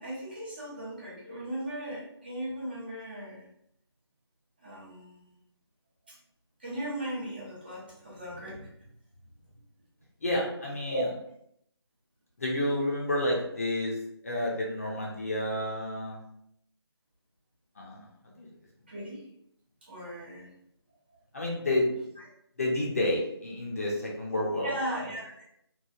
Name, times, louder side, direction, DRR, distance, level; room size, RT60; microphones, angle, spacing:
voice 1, 0.0-3.5 4.6-5.3 6.1-6.2 6.6-8.7 10.9-11.1 18.9-19.2 19.8-20.5 24.6-25.4, right 1 dB, 20° right, -5 dB, 0.5 m, -37 dB
voice 2, 10.2-11.0 12.4-14.0 14.2-16.2 17.8-18.5 21.3-21.9 22.6-24.7, left 1 dB, 35° left, -2 dB, 0.5 m, -30 dB
3.0 x 2.3 x 2.3 m, 0.74 s
figure-of-eight pair, 165°, 14 cm